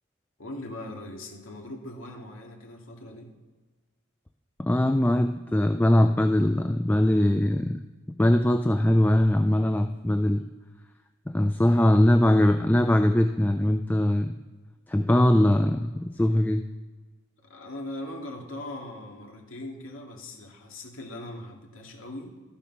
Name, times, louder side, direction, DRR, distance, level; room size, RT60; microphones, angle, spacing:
voice 1, 0.4-3.3 11.6-12.0 17.4-22.4, left 1 dB, 90° left, 1 dB, 2.1 m, -40 dB
voice 2, 4.6-7.8 8.2-10.5 11.3-14.3 14.9-16.6, left 1 dB, 10° left, 7 dB, 0.3 m, -21 dB
13.5 x 6.9 x 6.0 m, 1.3 s
head